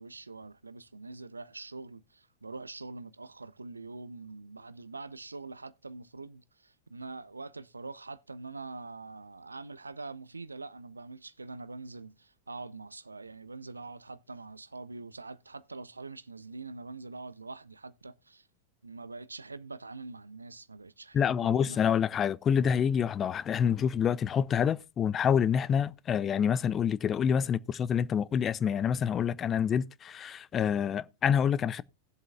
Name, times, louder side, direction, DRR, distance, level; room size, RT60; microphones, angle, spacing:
voice 1, 0.0-18.5 18.8-21.9, right 3 dB, 80° right, 0.5 m, -44 dB
voice 2, 21.1-31.8, left 8 dB, 25° left, 0.4 m, -27 dB
19.0 x 7.6 x 2.2 m
figure-of-eight pair, 90°, 0 cm